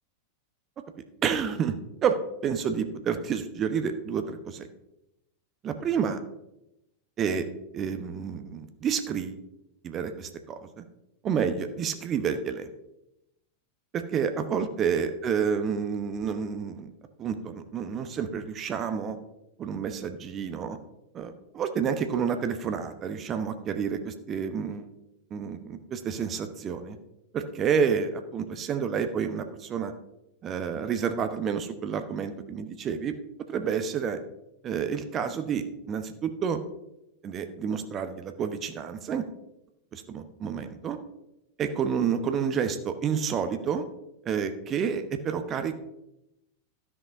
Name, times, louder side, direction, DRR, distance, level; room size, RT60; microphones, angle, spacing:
voice 1, 1.2-1.8 2.0-2.2 2.4-4.7 5.6-6.2 7.2-7.5 7.7-9.4 9.8-10.8 11.2-12.7 13.9-16.9 17.2-19.2 19.6-20.8 21.1-24.9 25.3-27.0 27.3-29.9 30.4-33.1 33.5-34.2 34.6-36.6 37.2-39.2 39.9-41.0 41.6-43.8 44.2-45.8, right 7 dB, 30° right, 8 dB, 0.9 m, -29 dB
13.0 x 6.1 x 5.2 m, 0.87 s
figure-of-eight pair, 90°, 0 cm